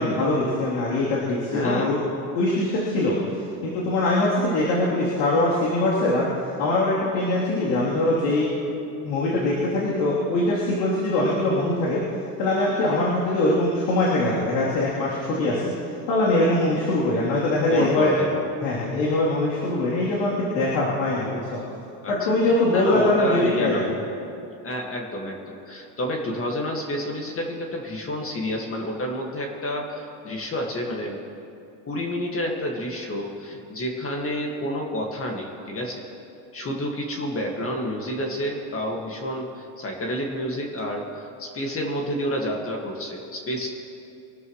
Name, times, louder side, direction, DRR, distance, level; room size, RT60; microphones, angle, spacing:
voice 1, 0.0-2.0 2.4-3.2 3.6-6.3 6.6-8.5 9.0-12.0 12.4-15.7 16.1-18.2 18.6-21.6 22.1-24.0, left 2 dB, 90° left, -6 dB, 3.4 m, -22 dB
voice 2, 1.5-1.9 14.3-14.5 15.4-15.7 17.7-18.4 22.0-22.1 22.5-23.9 24.6-31.2 31.9-36.0 36.5-43.7, equal, 25° left, 0 dB, 1.9 m, -29 dB
25.0 x 13.0 x 3.2 m, 2.6 s
supercardioid pair, 125°, 50 cm